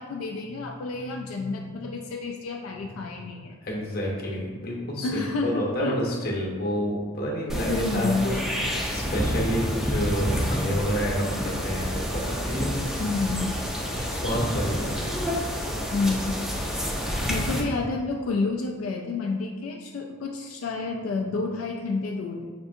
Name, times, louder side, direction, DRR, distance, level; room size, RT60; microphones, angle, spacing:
voice 1, 0.0-3.6 5.0-6.0 7.7-8.3 13.0-13.6 15.9-16.8 17.3-22.5, left 3 dB, 80° left, 1 dB, 0.3 m, -29 dB
voice 2, 3.6-8.4 8.9-12.8 13.9-15.1, equal, 50° left, -2 dB, 0.8 m, -29 dB
sound 1, 7.5-17.6, equal, ahead, 0.4 m, -28 dB
5.8 x 2.6 x 2.5 m, 1.5 s
head